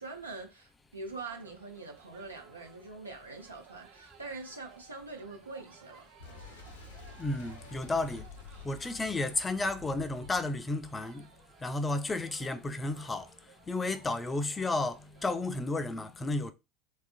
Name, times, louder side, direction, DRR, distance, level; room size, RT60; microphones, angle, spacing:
voice 1, 0.0-6.1, right 3 dB, 85° right, 0.6 m, -44 dB
sound 1, 1.1-15.3, right 7 dB, 50° right, 0.9 m, -58 dB
Boom, 6.2-11.8, left 4 dB, 65° left, 0.5 m, -50 dB
voice 2, 7.2-8.3 8.6-11.3 11.6-13.3 13.7-16.5, left 2 dB, 20° left, 0.4 m, -32 dB
3.3 x 2.4 x 2.5 m
figure-of-eight pair, 75°, 0 cm